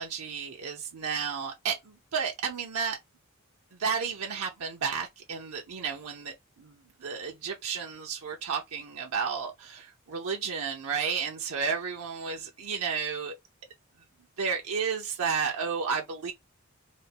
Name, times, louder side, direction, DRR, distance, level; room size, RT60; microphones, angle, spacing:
voice 1, 0.0-3.0 3.8-13.3 14.4-16.3, right 6 dB, 90° right, 0.7 m, -32 dB
4.1 x 2.2 x 4.0 m
head